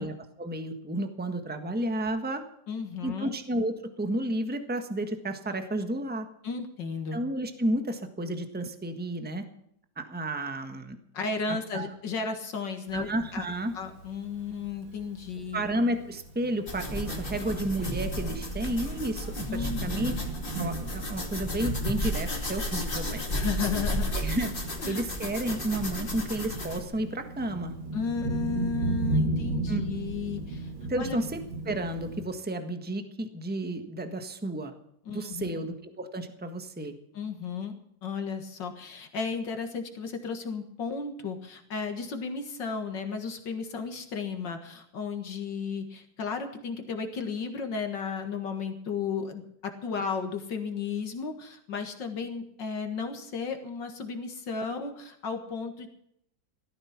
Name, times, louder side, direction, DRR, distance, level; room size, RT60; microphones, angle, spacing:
voice 1, 0.0-2.4 3.0-6.3 7.1-9.4 10.0-11.0 11.5-11.9 12.9-13.7 15.5-20.1 20.6-23.3 24.1-24.5 24.9-27.7 29.7-29.8 30.8-34.7 35.1-36.9, right 1 dB, 5° right, 7 dB, 1.3 m, -32 dB
voice 2, 2.7-3.3 6.4-7.2 11.1-13.5 13.7-15.7 19.5-20.1 23.3-24.1 24.8-25.0 27.9-30.7 31.0-31.2 35.1-35.7 37.1-37.7 38.0-55.9, left 5 dB, 70° left, 5 dB, 2.3 m, -34 dB
Thunder, 12.9-32.2, right 2 dB, 85° right, 2.6 m, -37 dB
sound 1, 16.7-26.8, equal, 25° left, 2.6 m, -33 dB
16.0 x 14.0 x 6.0 m, 0.74 s
omnidirectional pair, 2.1 m